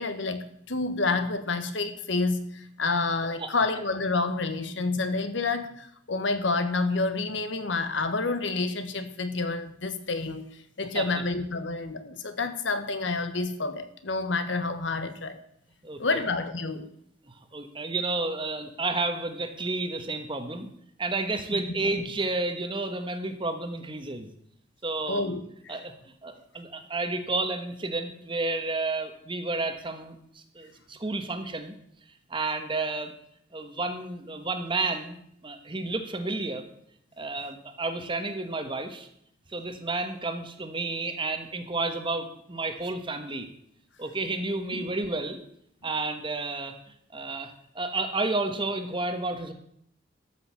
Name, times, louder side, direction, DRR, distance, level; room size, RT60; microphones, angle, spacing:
voice 1, 0.0-15.4 16.0-16.9 21.5-21.6 25.1-25.8 44.7-44.8, left 3 dB, 70° left, 10 dB, 1.2 m, -29 dB
voice 2, 15.8-16.2 17.5-20.7 21.0-24.3 24.8-25.3 25.7-25.9 26.2-31.8 32.3-33.1 33.5-35.2 35.4-36.6 37.2-39.1 39.5-43.5 44.0-45.4 45.8-46.7 47.1-49.5, right 3 dB, 25° right, 7 dB, 1.2 m, -31 dB
13.0 x 6.3 x 7.5 m, 0.70 s
head